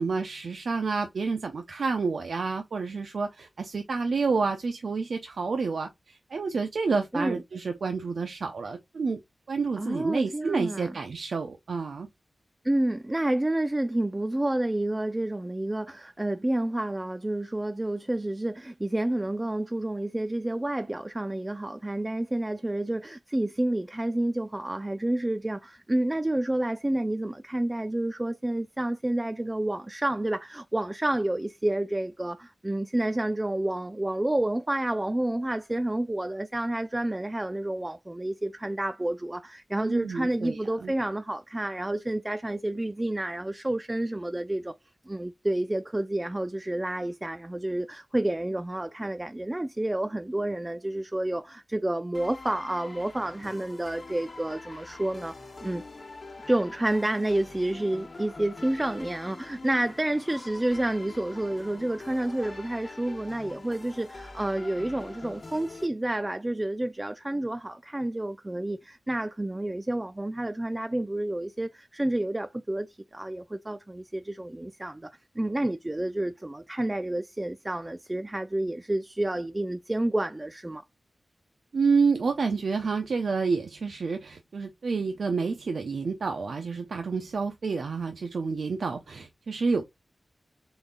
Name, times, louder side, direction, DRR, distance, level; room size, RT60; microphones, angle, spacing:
voice 1, 0.0-9.2 9.5-12.1 39.8-40.9 81.7-89.8, right 4 dB, 80° right, 0.6 m, -29 dB
voice 2, 9.8-10.9 12.6-44.7 45.1-55.3 55.6-55.8 56.5-80.8, right 1 dB, 20° right, 0.4 m, -29 dB
sound 1, 52.1-65.9, left 3 dB, 50° left, 1.1 m, -44 dB
3.9 x 3.4 x 3.8 m
wide cardioid pair, 70°, 0 cm